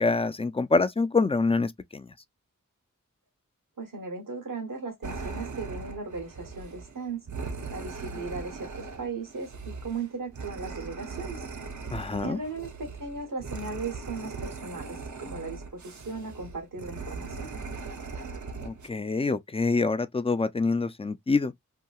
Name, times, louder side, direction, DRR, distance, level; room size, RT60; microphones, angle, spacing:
voice 1, 0.0-2.1 11.9-12.4 18.6-21.5, left 3 dB, 20° left, 0.4 m, -26 dB
voice 2, 3.8-7.3 7.7-11.4 12.2-17.5, right 4 dB, 85° right, 1.1 m, -37 dB
sound 1, 5.0-18.9, right 4 dB, 65° right, 0.6 m, -39 dB
2.9 x 2.7 x 2.3 m
wide cardioid pair, 40°, 32 cm